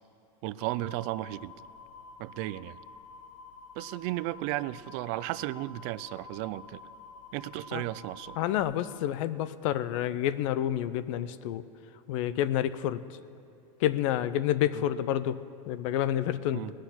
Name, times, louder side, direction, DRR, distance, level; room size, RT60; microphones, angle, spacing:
voice 1, 0.4-1.5 2.2-2.8 3.8-6.8 7.3-8.4 14.7-14.8 16.5-16.7, right 17 dB, 50° right, 18 dB, 0.4 m, -34 dB
sound 1, 0.6-8.6, left 4 dB, 80° left, 1.5 m, -49 dB
voice 2, 8.4-11.6 12.1-13.0 13.8-15.4 15.7-16.7, left 12 dB, 60° left, 14 dB, 0.6 m, -29 dB
18.5 x 6.4 x 9.8 m, 2.8 s
supercardioid pair, 140°, 18 cm